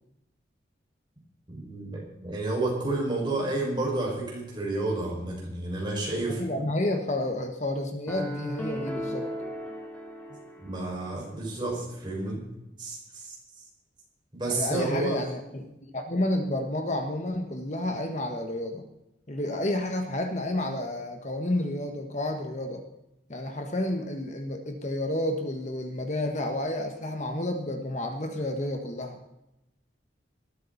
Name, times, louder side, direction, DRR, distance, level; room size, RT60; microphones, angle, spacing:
voice 1, 1.5-6.4 10.6-12.4 12.8-13.3 14.3-15.2, right 2 dB, 25° right, -3 dB, 5.8 m, -30 dB
voice 2, 6.3-9.3 14.5-18.8 19.3-22.8 23.3-29.2, left 1 dB, 40° left, 5 dB, 1.5 m, -30 dB
sound 1, 8.1-11.3, equal, 10° left, 2.5 m, -37 dB
19.5 x 13.5 x 4.2 m, 0.87 s
head